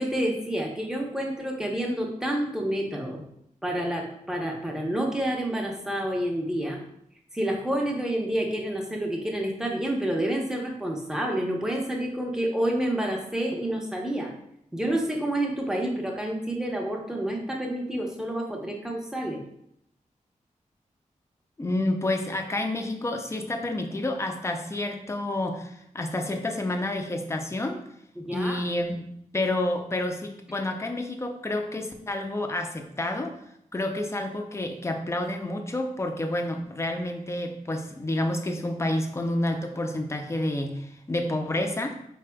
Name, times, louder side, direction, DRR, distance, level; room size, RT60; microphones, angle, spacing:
voice 1, 0.0-3.3 3.6-6.8 7.3-14.3 14.7-19.4 28.2-28.6, right 1 dB, 5° right, 0 dB, 0.8 m, -29 dB
voice 2, 21.6-27.8 28.3-29.0 29.3-33.3 33.7-42.0, left 1 dB, 20° left, 4 dB, 0.5 m, -29 dB
4.9 x 4.1 x 2.3 m, 0.74 s
wide cardioid pair, 110°, 14 cm